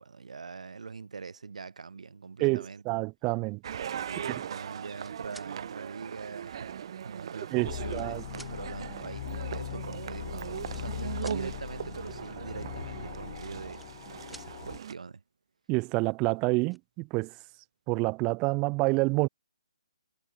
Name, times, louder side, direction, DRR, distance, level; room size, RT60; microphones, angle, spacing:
voice 1, 0.0-2.8 4.1-13.8 14.3-15.2, right 5 dB, 75° right, 7.6 m, -43 dB
voice 2, 2.4-3.6 4.3-4.4 7.5-8.2 15.7-17.3 17.9-19.3, right 27 dB, 20° right, 0.9 m, -28 dB
sound 1, 3.6-14.9, right 9 dB, 45° right, 1.8 m, -39 dB
sound 2, 4.9-5.5 6.5-6.6 7.4-8.1 8.3-8.5 9.7-9.8 10.0-10.2 10.5-11.4 13.3-14.0 14.3-14.5 16.0-16.1 16.4-16.8, right 1 dB, ahead, 1.9 m, -52 dB
sound 3, 7.6-14.8, left 14 dB, 35° left, 3.0 m, -40 dB
hypercardioid pair, 160°, 4 cm